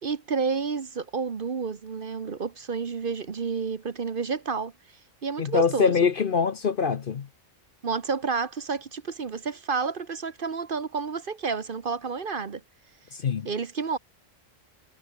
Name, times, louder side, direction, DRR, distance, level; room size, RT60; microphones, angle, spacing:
voice 1, 0.0-4.7 5.2-6.1 7.8-12.6 13.4-14.0, right 5 dB, 45° right, 1.2 m, -30 dB
voice 2, 5.4-7.3 13.1-13.5, left 6 dB, 50° left, 0.9 m, -24 dB
omnidirectional pair, 1.3 m